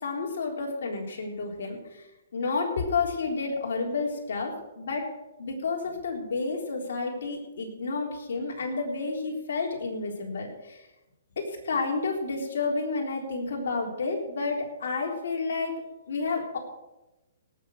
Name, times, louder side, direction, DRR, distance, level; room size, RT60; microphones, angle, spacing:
voice 1, 0.0-1.8 2.3-5.1 5.4-10.8 11.4-15.8 16.1-16.6, left 4 dB, 65° left, 0 dB, 3.8 m, -30 dB
18.0 x 6.9 x 6.4 m, 0.99 s
hypercardioid pair, 155°, 0 cm